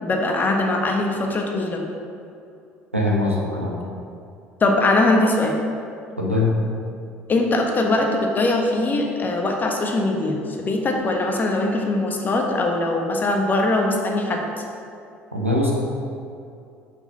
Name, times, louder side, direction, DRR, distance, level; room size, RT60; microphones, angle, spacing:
voice 1, 0.0-1.8 4.6-5.6 7.3-14.4, left 2 dB, 25° left, 1 dB, 1.3 m, -21 dB
voice 2, 2.9-3.8 6.2-6.5 15.3-15.7, left 2 dB, 90° right, -2 dB, 1.1 m, -21 dB
6.8 x 5.8 x 6.1 m, 2.6 s
figure-of-eight pair, 60°, 7 cm